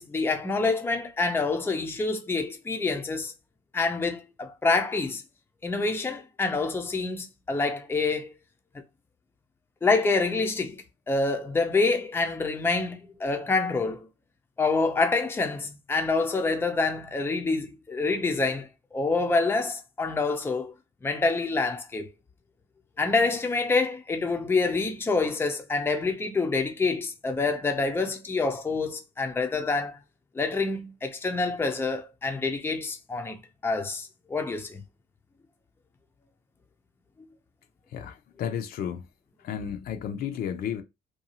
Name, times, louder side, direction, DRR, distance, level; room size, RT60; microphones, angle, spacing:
voice 1, 0.0-3.3 3.7-5.2 5.6-8.3 9.8-14.1 14.6-20.7 21.0-22.1 23.0-30.0 30.3-34.8, left 3 dB, 15° left, 0.5 m, -27 dB
voice 2, 37.9-39.0 39.4-40.8, left 8 dB, 65° left, 0.6 m, -32 dB
2.7 x 2.3 x 2.8 m
cardioid pair, 110°, 17 cm